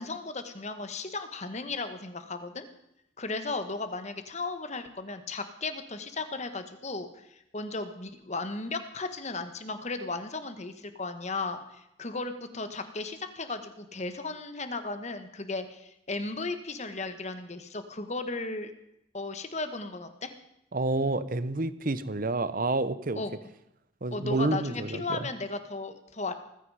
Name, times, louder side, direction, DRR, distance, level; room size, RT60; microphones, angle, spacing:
voice 1, 0.0-2.6 3.2-18.7 19.1-20.3 23.1-23.3 24.1-26.3, left 3 dB, 35° left, 9 dB, 1.4 m, -35 dB
voice 2, 20.7-23.2 24.0-25.2, right 2 dB, 45° right, 14 dB, 0.9 m, -29 dB
19.5 x 15.0 x 4.9 m, 0.83 s
head